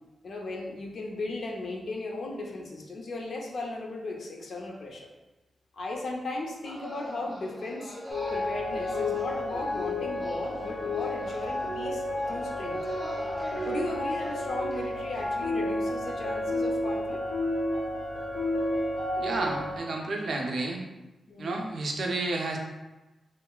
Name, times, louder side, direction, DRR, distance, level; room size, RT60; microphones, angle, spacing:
voice 1, 0.2-5.1 5.7-7.9 8.3-12.8 13.6-17.2 21.3-21.6, left 2 dB, 55° left, 0 dB, 0.4 m, -36 dB
sound 1, 6.6-15.3, equal, 10° right, 0.6 m, -42 dB
sound 2, 8.1-19.8, left 1 dB, 90° left, 0.7 m, -31 dB
voice 2, 19.2-20.8 21.4-22.6, right 2 dB, 55° right, 1 dB, 0.3 m, -31 dB
3.0 x 2.2 x 2.3 m, 1.1 s
wide cardioid pair, 180°, 0 cm